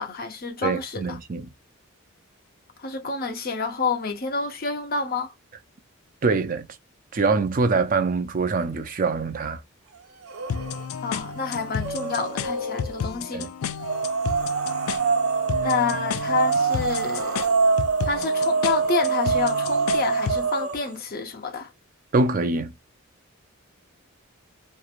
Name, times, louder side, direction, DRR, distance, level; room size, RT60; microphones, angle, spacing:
voice 1, 0.0-1.2 2.8-5.3 11.0-13.5 15.6-17.5 18.1-21.7, left 4 dB, 45° left, 0.7 m, -28 dB
voice 2, 0.6-1.5 6.2-6.7 7.1-9.6 13.3-13.5 22.1-22.7, right 3 dB, 40° right, 0.4 m, -24 dB
sound 1, 10.2-10.9 11.2-13.0 13.8-21.0, right 5 dB, 85° right, 1.0 m, -25 dB
sound 2, 10.5-20.5, left 7 dB, 80° left, 0.3 m, -33 dB
3.1 x 2.5 x 2.4 m
head